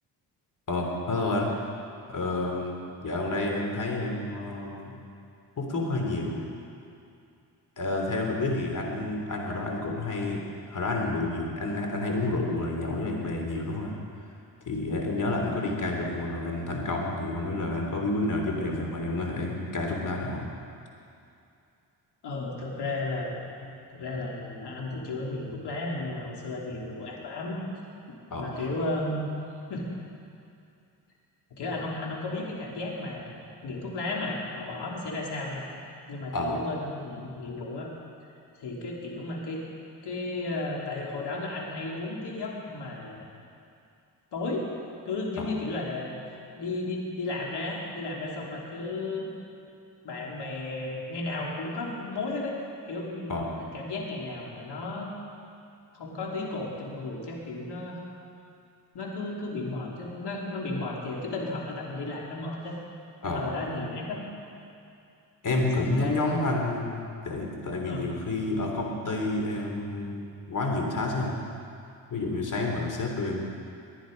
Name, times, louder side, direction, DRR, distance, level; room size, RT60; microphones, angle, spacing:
voice 1, 0.7-1.5 2.1-2.7 3.0-5.0 5.6-6.4 7.8-10.4 10.7-13.9 14.6-20.5 28.3-28.7 36.3-36.6 45.4-45.5 53.3-53.5 63.2-63.5 65.4-71.4 72.1-73.4, left 2 dB, 45° left, 1 dB, 3.2 m, -29 dB
voice 2, 22.2-23.4 23.9-27.7 28.4-29.3 29.7-29.9 31.6-33.4 33.6-35.6 36.1-37.9 38.6-39.6 40.0-43.2 44.3-44.7 45.0-46.2 46.5-49.3 50.0-52.6 52.9-55.1 55.9-58.0 58.9-62.8 63.2-64.2 65.7-66.5 67.8-68.1, left 2 dB, 70° left, -2 dB, 3.1 m, -34 dB
20.0 x 10.0 x 5.3 m, 2.5 s
cardioid pair, 70°, 41 cm